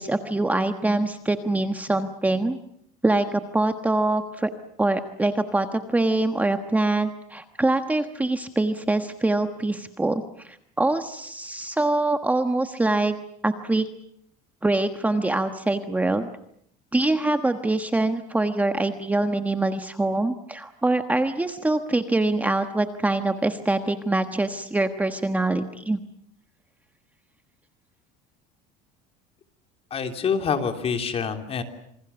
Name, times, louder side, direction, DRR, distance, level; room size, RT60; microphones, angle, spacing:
voice 1, 0.0-2.6 3.0-4.5 4.8-13.2 13.4-13.9 14.6-16.3 16.9-26.0, right 2 dB, 10° right, 8 dB, 1.3 m, -24 dB
voice 2, 29.9-31.6, left 6 dB, 35° left, 6 dB, 3.4 m, -26 dB
27.5 x 25.5 x 7.1 m, 0.70 s
cardioid pair, 135°, 18 cm